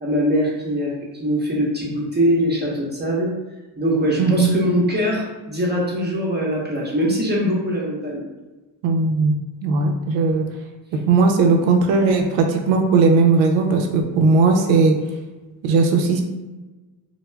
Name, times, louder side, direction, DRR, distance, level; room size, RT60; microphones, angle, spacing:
voice 1, 0.0-3.3 3.8-8.2, equal, 20° right, -3 dB, 0.7 m, -22 dB
voice 2, 4.2-4.6 8.8-9.3 9.6-10.5 10.9-15.0 15.6-16.2, right 4 dB, 65° right, 3 dB, 0.5 m, -17 dB
2.2 x 2.1 x 3.2 m, 1.2 s
supercardioid pair, 75°, 48 cm